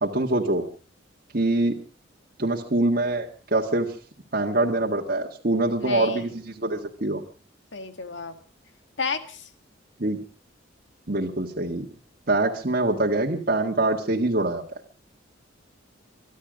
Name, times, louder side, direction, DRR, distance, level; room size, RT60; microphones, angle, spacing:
voice 1, 0.0-0.6 1.3-1.8 2.4-3.3 3.5-3.9 4.3-7.2 10.0-10.2 11.1-11.9 12.3-14.6, right 2 dB, 45° right, 0 dB, 1.7 m, -24 dB
voice 2, 5.8-6.3 7.7-8.3 9.0-9.5, left 5 dB, 65° left, 9 dB, 2.0 m, -32 dB
24.5 x 11.5 x 5.1 m, 0.38 s
head